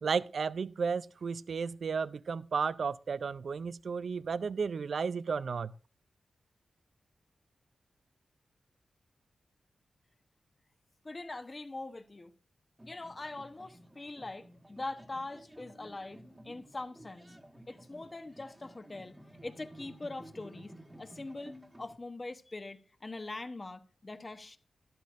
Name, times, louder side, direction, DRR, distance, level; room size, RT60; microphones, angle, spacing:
voice 1, 0.0-5.7, right 5 dB, 70° right, 0.4 m, -33 dB
voice 2, 11.0-12.3 12.8-17.3 17.7-19.2 19.4-24.6, left 2 dB, 30° left, 0.9 m, -43 dB
sound 1, 12.8-22.0, right 1 dB, 15° right, 1.4 m, -54 dB
13.5 x 11.5 x 2.5 m
cardioid pair, 75°, 0 cm